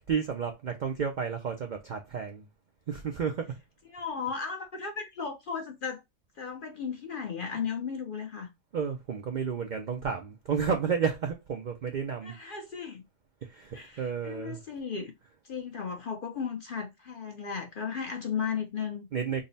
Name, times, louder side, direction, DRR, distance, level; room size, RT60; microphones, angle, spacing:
voice 1, 0.1-2.5 2.9-3.6 8.7-12.4 13.4-14.6 19.1-19.4, right 6 dB, 70° right, 0.4 m, -31 dB
voice 2, 3.9-6.0 6.4-8.5 12.2-13.0 13.7-15.1 15.4-19.1, left 6 dB, 55° left, 0.6 m, -35 dB
3.7 x 2.1 x 3.9 m
omnidirectional pair, 1.4 m